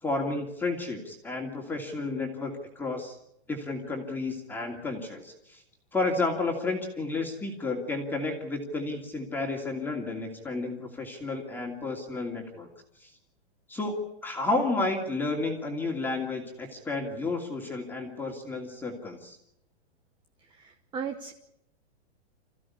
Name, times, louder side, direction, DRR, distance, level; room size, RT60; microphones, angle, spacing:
voice 1, 0.0-3.2 3.5-5.6 5.9-12.7 13.0-13.1 13.7-19.4, left 3 dB, 5° left, 1 dB, 2.7 m, -31 dB
voice 2, 20.5-21.3, right 6 dB, 15° right, 7 dB, 1.0 m, -36 dB
27.0 x 15.5 x 9.7 m, 0.80 s
hypercardioid pair, 155°, 34 cm